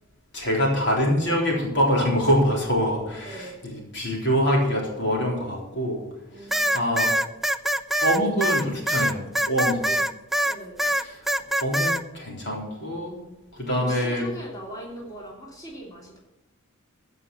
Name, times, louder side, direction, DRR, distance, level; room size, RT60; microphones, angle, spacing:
voice 1, 0.3-6.0 6.4-7.1 8.0-9.8 11.0-11.3 11.6-13.2 13.6-14.3, equal, 60° left, -2 dB, 3.7 m, -25 dB
voice 2, 3.1-3.5 6.3-6.8 9.8-10.1 10.5-10.9 13.7-16.2, right 1 dB, 20° left, -3 dB, 3.2 m, -40 dB
sound 1, 6.5-10.5 10.8-12.0, equal, ahead, 0.4 m, -23 dB
15.0 x 5.6 x 7.1 m, 1.0 s
head